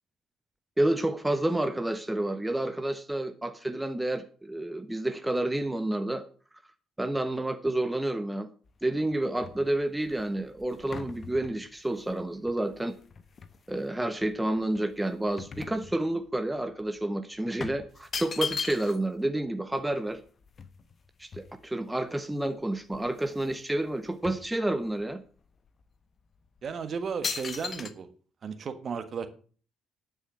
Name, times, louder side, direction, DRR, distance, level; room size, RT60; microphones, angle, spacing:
voice 1, 0.8-6.2 7.0-8.5 8.8-13.0 13.7-20.2 21.2-25.2, right 1 dB, 10° right, 1.1 m, -29 dB
sound 1, 8.7-13.8 14.2-16.4 16.7-16.9 17.6-19.2 19.5-19.6 19.8-21.9 22.5-22.6 22.8-23.6 23.9-25.1 25.7-25.8 26.5-26.7 27.2-27.9, left 6 dB, 40° left, 1.2 m, -39 dB
voice 2, 26.6-28.1 28.4-29.3, right 6 dB, 45° right, 1.5 m, -34 dB
10.0 x 8.8 x 6.1 m
figure-of-eight pair, 45°, 0 cm